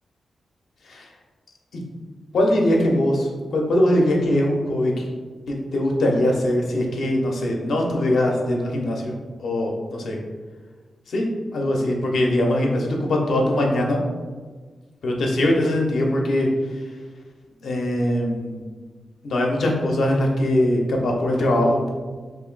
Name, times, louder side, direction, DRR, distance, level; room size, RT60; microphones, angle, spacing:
voice 1, 2.3-5.1 5.5-9.1 9.4-10.2 11.1-14.0 15.0-16.5 17.6-18.6 19.2-21.9, left 1 dB, 75° left, 0 dB, 0.7 m, -21 dB
2.9 x 2.7 x 3.9 m, 1.4 s
wide cardioid pair, 130°, 0 cm